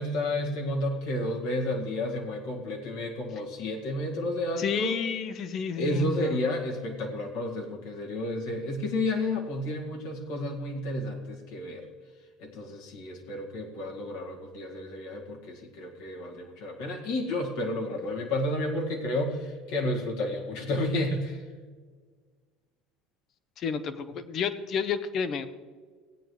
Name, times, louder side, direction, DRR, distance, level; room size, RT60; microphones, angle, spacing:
voice 1, 0.0-4.9 5.8-11.8 12.4-21.4, left 1 dB, 70° left, 0 dB, 2.0 m, -31 dB
voice 2, 4.6-6.4 23.6-25.5, left 6 dB, 50° left, 11 dB, 0.9 m, -30 dB
17.0 x 9.1 x 3.2 m, 1.6 s
hypercardioid pair, 75°, 0 cm